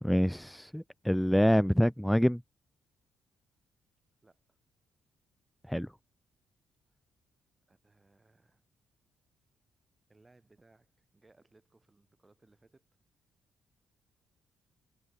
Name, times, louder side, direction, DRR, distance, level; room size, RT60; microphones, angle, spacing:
voice 1, 0.0-2.4 5.7-5.9, equal, ahead, 0.3 m, -26 dB
voice 2, 4.2-4.6 6.9-7.0 7.7-8.6 10.1-12.9, right 2 dB, 20° right, 5.9 m, -65 dB
cardioid pair, 90°, 0 cm